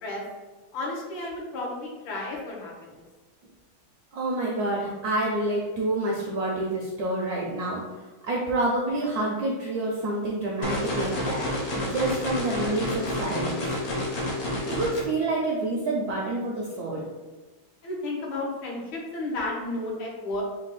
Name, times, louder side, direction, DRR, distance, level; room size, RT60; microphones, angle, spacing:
voice 1, 0.7-3.1 17.8-20.4, left 2 dB, 75° left, -2 dB, 1.7 m, -33 dB
voice 2, 4.1-11.5 11.8-13.7 14.6-17.1, right 2 dB, 75° right, -2 dB, 0.8 m, -28 dB
sound 1, 10.6-15.0, left 1 dB, 50° left, 1.0 m, -29 dB
4.4 x 2.3 x 4.0 m, 1.2 s
omnidirectional pair, 2.2 m